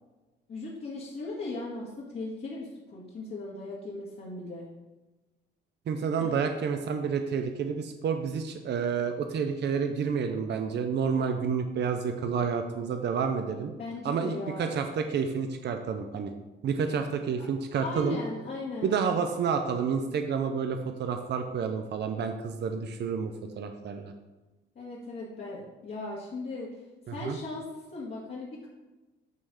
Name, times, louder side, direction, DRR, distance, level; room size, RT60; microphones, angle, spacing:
voice 1, 0.5-4.7 6.1-6.3 13.8-14.8 17.4-17.5 17.8-19.0 24.8-28.7, left 2 dB, 50° left, -6 dB, 2.1 m, -38 dB
voice 2, 5.9-13.7 14.0-16.3 16.6-18.2 18.8-24.1 27.2-27.4, right 6 dB, 60° right, 6 dB, 0.8 m, -29 dB
9.4 x 3.3 x 6.4 m, 1.1 s
cardioid pair, 90°, 20 cm